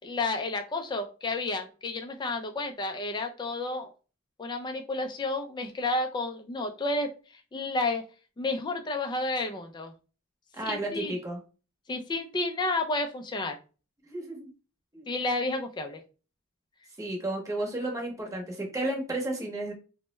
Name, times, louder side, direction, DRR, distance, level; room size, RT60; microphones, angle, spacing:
voice 1, 0.0-3.9 4.4-7.1 7.5-8.0 8.4-9.9 10.7-11.1 11.9-13.6 15.1-16.0, left 2 dB, 20° left, 5 dB, 0.3 m, -31 dB
voice 2, 10.5-11.4 14.0-14.5 14.9-15.1 17.0-19.7, right 1 dB, 15° right, 0 dB, 0.9 m, -32 dB
3.2 x 2.1 x 3.0 m, 0.35 s
head